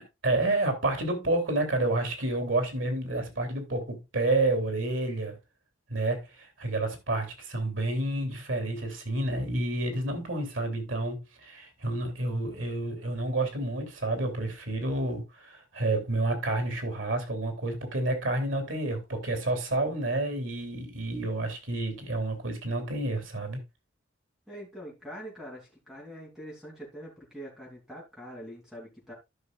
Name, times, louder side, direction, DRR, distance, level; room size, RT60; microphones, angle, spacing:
voice 1, 0.2-5.4 5.9-23.6, right 2 dB, 90° right, 3.0 m, -29 dB
voice 2, 24.5-29.1, equal, 5° right, 3.4 m, -44 dB
13.5 x 6.2 x 2.4 m
head